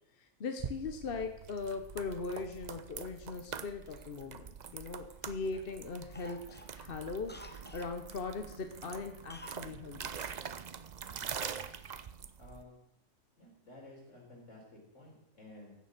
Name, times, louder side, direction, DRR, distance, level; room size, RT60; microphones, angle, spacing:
voice 1, 0.1-6.4 6.7-10.0, left 4 dB, 50° left, 6 dB, 1.0 m, -40 dB
sound 1, 0.6-12.6, right 7 dB, 50° right, 0.5 m, -44 dB
Cough, 3.9-5.2 5.5-5.8 6.1-7.9 9.3-9.7 9.9-10.0, left 1 dB, 10° left, 0.6 m, -53 dB
voice 2, 12.4-12.8 13.4-14.6 14.9-15.8, left 2 dB, 65° left, -2 dB, 4.5 m, -53 dB
15.5 x 6.9 x 6.5 m, 0.79 s
omnidirectional pair, 1.4 m